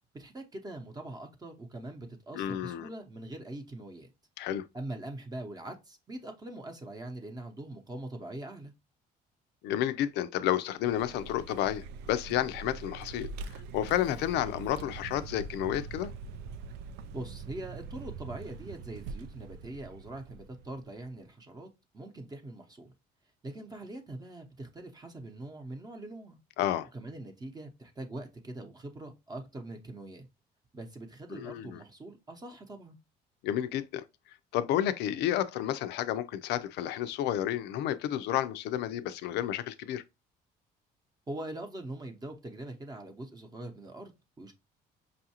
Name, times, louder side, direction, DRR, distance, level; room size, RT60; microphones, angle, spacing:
voice 1, 0.1-4.1 4.7-8.7 17.1-21.7 21.9-22.9 23.4-26.4 26.9-30.3 30.7-33.0 41.3-44.5, right 1 dB, 25° right, 0.7 m, -42 dB
voice 2, 2.3-2.9 4.4-4.7 9.6-16.1 26.6-26.9 31.3-31.8 33.4-34.0 34.5-40.0, left 11 dB, 80° left, 0.5 m, -31 dB
Vehicle, 10.8-21.1, right 5 dB, 85° right, 0.4 m, -44 dB
5.4 x 2.5 x 2.8 m
cardioid pair, 110°, 17 cm